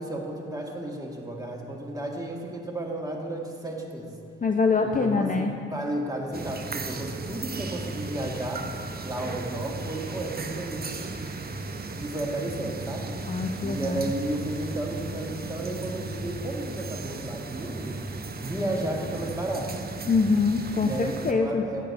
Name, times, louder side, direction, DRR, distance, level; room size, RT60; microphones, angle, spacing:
voice 1, 0.0-4.2 4.8-11.2 12.0-13.2 13.6-18.0 18.4-19.8 20.8-21.8, right 1 dB, 10° right, -1 dB, 1.7 m, -33 dB
voice 2, 4.4-5.6 13.3-14.1 20.1-21.6, left 4 dB, 30° left, 4 dB, 0.6 m, -24 dB
sound 1, 6.3-21.3, right 3 dB, 35° right, 0.8 m, -36 dB
10.5 x 9.2 x 2.6 m, 2.8 s
hypercardioid pair, 45°, 29 cm